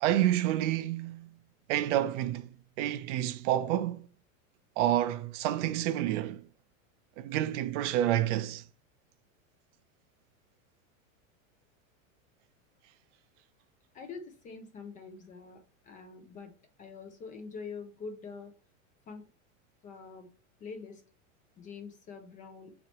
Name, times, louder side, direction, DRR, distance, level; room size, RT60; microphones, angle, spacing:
voice 1, 0.0-1.3 1.7-2.5 2.8-4.0 4.8-6.4 7.2-8.6, right 12 dB, 60° right, 0.5 m, -29 dB
voice 2, 13.9-16.5 16.8-18.5 19.1-19.2 19.8-20.3 20.6-21.0 21.6-22.7, left 5 dB, 20° left, 0.3 m, -45 dB
4.0 x 3.0 x 3.0 m
supercardioid pair, 130°, 41 cm